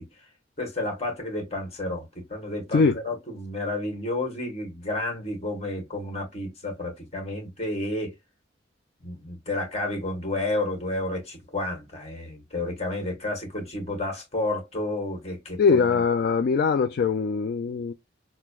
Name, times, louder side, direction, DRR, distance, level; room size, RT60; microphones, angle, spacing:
voice 1, 0.6-8.1 9.0-16.0, left 2 dB, 35° left, 1.4 m, -31 dB
voice 2, 15.6-17.9, left 5 dB, 55° left, 0.3 m, -22 dB
5.9 x 2.1 x 2.3 m
head